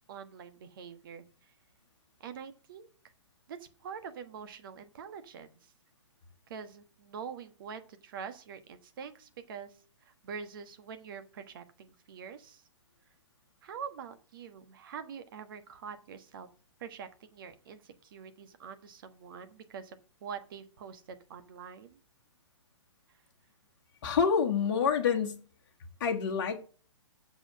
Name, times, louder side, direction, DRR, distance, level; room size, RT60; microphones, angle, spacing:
voice 1, 0.1-1.5 2.2-2.9 3.5-5.7 6.5-12.6 13.6-16.5 16.8-22.0, right 7 dB, 45° right, 1.2 m, -45 dB
voice 2, 24.0-25.4 26.0-26.6, left 6 dB, 40° left, 1.4 m, -27 dB
7.7 x 6.2 x 6.5 m
figure-of-eight pair, 125°, 16 cm